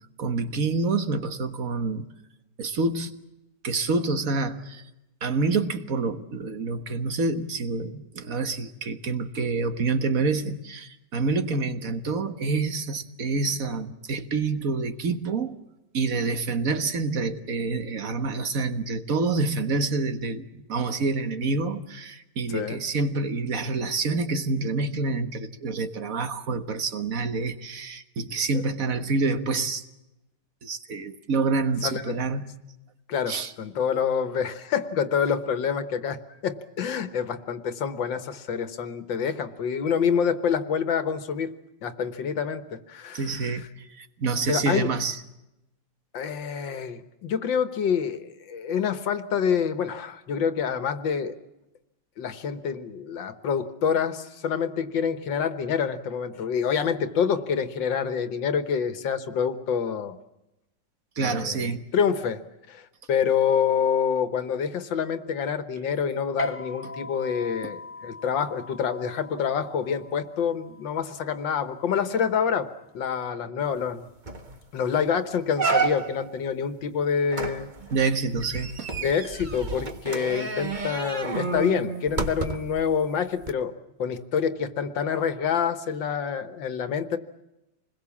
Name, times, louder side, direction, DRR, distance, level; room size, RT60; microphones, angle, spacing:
voice 1, 0.2-2.0 2.6-3.1 3.6-4.8 5.2-15.6 15.9-29.8 30.6-32.5 33.3-33.5 43.1-43.7 44.0-45.2 61.2-61.8 77.9-78.9, right 4 dB, 50° right, 1.7 m, -27 dB
voice 2, 22.5-22.8 28.5-28.6 31.8-32.1 33.1-41.5 41.8-43.7 44.5-44.9 46.1-51.4 52.2-60.2 61.2-62.4 62.7-72.7 72.9-74.1 74.7-77.7 79.0-83.7 84.0-87.2, left 7 dB, 85° left, 2.0 m, -27 dB
sound 1, 66.4-73.2, left 2 dB, 20° left, 0.4 m, -39 dB
sound 2, 73.8-73.9 74.3-74.6 75.0-75.1 75.6-76.3 77.3-82.8 83.4-83.5, right 4 dB, 30° right, 1.3 m, -30 dB
27.0 x 21.0 x 7.3 m
omnidirectional pair, 2.0 m